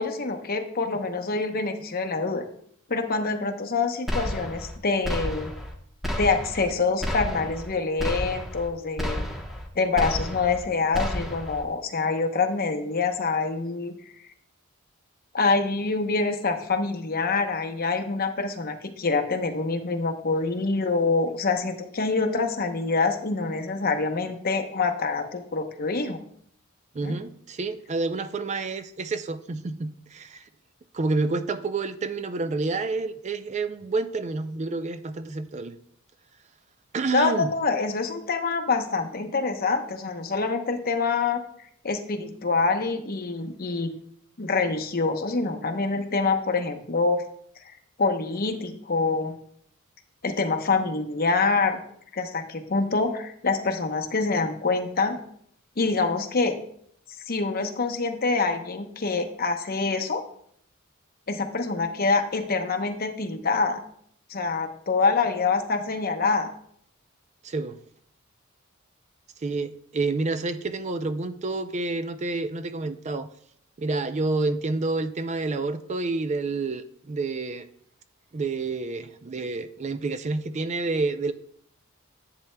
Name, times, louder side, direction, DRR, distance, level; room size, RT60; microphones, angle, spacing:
voice 1, 0.0-2.4 2.9-5.5 6.2-9.3 9.8-13.9 15.3-26.2 27.0-27.2 37.1-41.4 41.8-43.9 44.4-47.2 48.0-49.4 50.2-51.8 52.1-55.2 55.8-56.6 57.3-60.2 61.3-63.8 64.3-66.5, left 4 dB, 45° left, 6 dB, 0.8 m, -26 dB
sound 1, 4.1-4.8 5.0-5.7 6.0-6.7 7.0-7.7 8.0-8.7 9.0-9.7 10.0-10.7 10.9-11.6, equal, ahead, 1.0 m, -31 dB
voice 2, 26.9-30.5 30.9-35.8 36.9-37.5 67.4-67.8 69.4-73.3 73.8-77.7 78.3-81.3, right 3 dB, 35° right, 10 dB, 0.4 m, -29 dB
10.5 x 8.2 x 2.2 m, 0.65 s
head